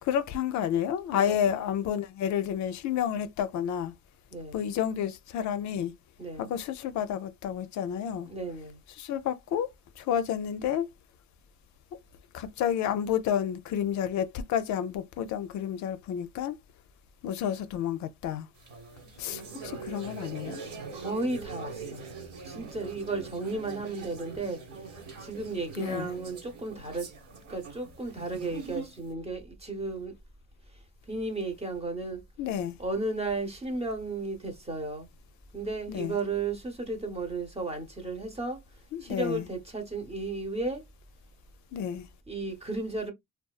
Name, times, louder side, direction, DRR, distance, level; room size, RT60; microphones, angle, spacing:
voice 1, 0.0-3.9 4.5-5.9 6.4-8.3 9.0-10.9 12.3-16.6 17.2-18.5 19.2-20.6 25.7-26.1 32.4-32.8 35.9-36.2 38.9-39.5 41.7-42.1, left 9 dB, 70° left, 0.4 m, -30 dB
voice 2, 6.2-6.5 8.3-8.8 20.5-22.1 22.4-24.9 25.2-27.1 27.5-30.1 31.1-32.2 32.8-35.1 35.5-38.6 39.0-40.8 42.3-43.1, right 3 dB, 20° right, 0.8 m, -34 dB
sound 1, 18.6-29.1, right 5 dB, 75° right, 1.4 m, -43 dB
2.6 x 2.3 x 2.3 m
cardioid pair, 90°, 30 cm